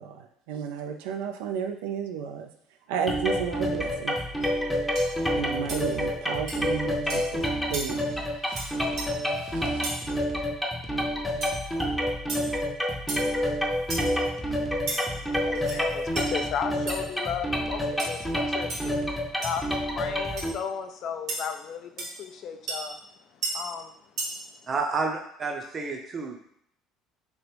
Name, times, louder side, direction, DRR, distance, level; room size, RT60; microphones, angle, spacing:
voice 1, 0.0-2.5 2.9-4.2 5.3-7.4 7.7-8.1 8.5-10.1, right 7 dB, 85° right, 6 dB, 0.3 m, -33 dB
sound 1, 3.1-20.5, equal, 5° left, 0.6 m, -28 dB
sound 2, 4.4-4.6 5.0-5.1 5.7-5.8 6.5-6.6 7.1-7.3 7.7-7.9 8.6-8.7 9.0-9.1 9.8-10.0 11.4-11.5 12.3-12.5 13.1-13.3 13.9-14.1 14.9-15.0 15.5-15.8 16.2-16.3 16.9-17.0 18.0-18.2 18.7-18.8 19.4-19.6 20.4-20.5 21.3-21.4 22.0-22.1 22.7-22.8 23.4-23.5 24.2-24.3, right 2 dB, 60° right, 1.0 m, -33 dB
voice 2, 14.9-23.0 23.3-23.9, left 7 dB, 55° left, 7 dB, 0.4 m, -35 dB
voice 3, 24.7-26.4, right 4 dB, 35° right, 3 dB, 0.6 m, -30 dB
3.0 x 2.5 x 3.3 m, 0.70 s
supercardioid pair, 85°, 0 cm